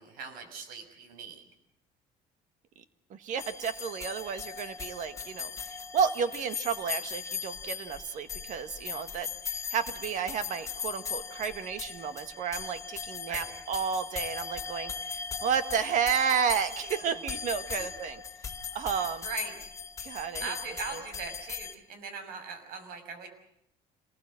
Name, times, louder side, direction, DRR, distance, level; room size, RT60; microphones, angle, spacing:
voice 1, 0.0-1.4 13.3-13.5 17.7-17.9 19.2-19.6 20.4-23.3, right 5 dB, 75° right, 7 dB, 6.2 m, -40 dB
voice 2, 3.1-18.2 18.7-19.2 20.0-20.5 20.9-21.0, right 7 dB, 55° right, 11 dB, 1.5 m, -32 dB
sound 1, 3.4-21.7, left 6 dB, 20° left, 1.9 m, -39 dB
27.0 x 20.0 x 7.6 m, 0.76 s
cardioid pair, 155°, 16 cm